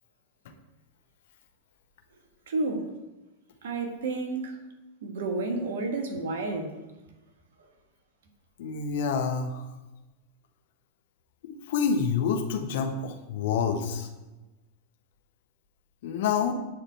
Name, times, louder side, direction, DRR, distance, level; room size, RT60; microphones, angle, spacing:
voice 1, 2.5-2.9 3.6-4.6 5.0-6.8, right 3 dB, 60° right, 1.8 m, -31 dB
voice 2, 8.6-9.6 11.4-14.1 16.0-16.5, left 6 dB, 55° left, 1.4 m, -28 dB
10.5 x 4.9 x 8.2 m
figure-of-eight pair, 90°, 0 cm